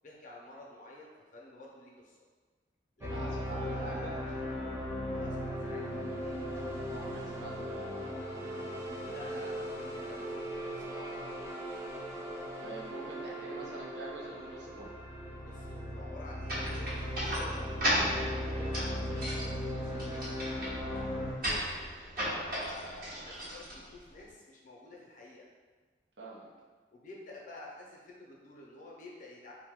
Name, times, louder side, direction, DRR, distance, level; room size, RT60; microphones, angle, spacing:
voice 1, 0.0-2.2 3.0-4.5 5.1-6.8 9.1-11.4 13.3-13.7 15.4-17.8 18.6-20.1 22.3-25.5 26.9-29.5, left 2 dB, 50° left, -2 dB, 0.6 m, -50 dB
sound 1, 3.0-21.3, equal, 15° right, 0.4 m, -38 dB
voice 2, 3.1-4.2 6.8-8.1 12.6-14.9 18.4-18.8 20.8-21.1 26.2-26.5, right 2 dB, 75° right, -4 dB, 0.6 m, -45 dB
sound 2, 16.5-24.3, equal, 55° right, 1.0 m, -36 dB
2.6 x 2.1 x 3.5 m, 1.4 s
head